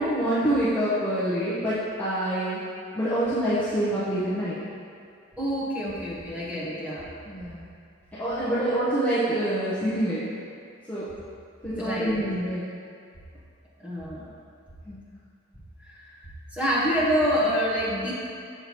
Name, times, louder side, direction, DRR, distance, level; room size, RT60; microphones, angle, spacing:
voice 1, 0.0-2.6 2.9-4.6 7.3-7.6 8.2-10.2 10.9-11.0 11.6-12.6 14.9-15.0, right 1 dB, 10° left, -12 dB, 0.9 m, -26 dB
voice 2, 5.4-7.1 8.4-8.6 11.7-12.2 13.8-14.3 15.8-16.2 16.5-18.1, equal, 5° right, -8 dB, 1.2 m, -27 dB
6.6 x 5.7 x 3.0 m, 2.3 s
head